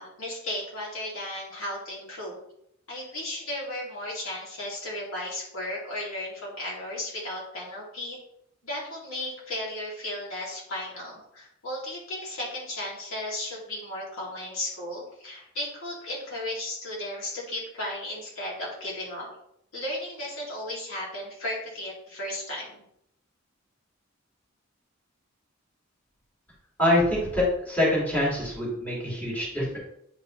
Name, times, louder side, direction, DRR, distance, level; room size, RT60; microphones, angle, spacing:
voice 1, 0.0-2.4 2.9-8.2 8.6-19.3 19.7-22.8, left 1 dB, 80° left, -4 dB, 2.8 m, -35 dB
voice 2, 26.8-29.8, left 1 dB, 10° left, -7 dB, 2.6 m, -25 dB
9.0 x 4.2 x 3.2 m, 0.73 s
head